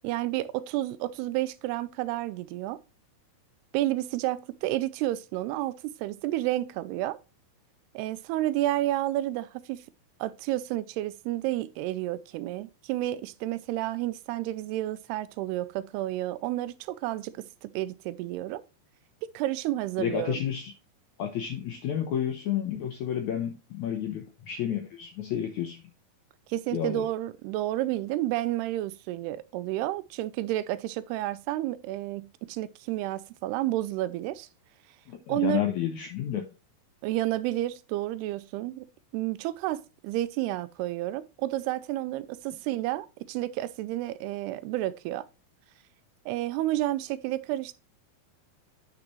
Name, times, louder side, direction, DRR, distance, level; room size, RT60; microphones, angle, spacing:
voice 1, 0.0-2.8 3.7-7.2 7.9-9.8 10.2-18.6 19.3-20.4 26.5-34.5 35.3-35.6 37.0-38.9 39.1-45.3 46.3-47.7, right 15 dB, 90° right, 2.7 m, -31 dB
voice 2, 20.0-20.7 21.2-25.8 26.7-27.1 35.1-36.5, left 9 dB, 75° left, 1.7 m, -31 dB
9.8 x 6.0 x 3.1 m
omnidirectional pair, 4.5 m